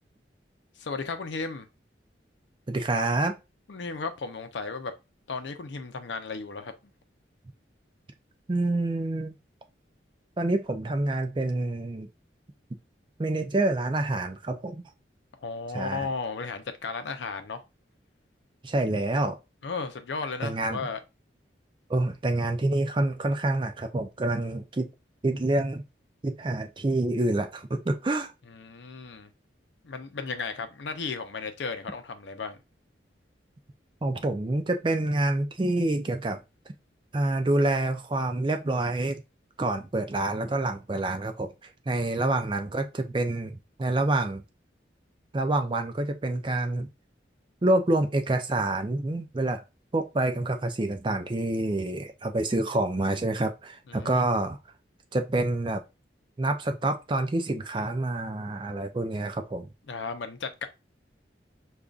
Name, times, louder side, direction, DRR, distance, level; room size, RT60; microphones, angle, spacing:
voice 1, 0.8-1.7 3.7-4.9 5.3-6.7 15.4-17.6 19.6-21.0 28.5-29.3 29.8-32.6 41.9-42.4 53.9-54.3 59.9-60.7, left 4 dB, 75° left, 0.5 m, -35 dB
voice 2, 2.7-3.4 8.5-9.4 10.4-12.1 13.2-14.8 15.7-16.1 18.6-19.4 20.4-20.8 21.9-24.9 25.2-25.8 26.2-28.3 34.0-36.4 37.1-39.2 39.6-41.5 41.9-44.4 45.3-46.9 47.6-49.6 49.9-54.6 55.1-55.8 56.4-59.7, right 2 dB, 25° right, 0.4 m, -27 dB
5.1 x 2.4 x 2.3 m
head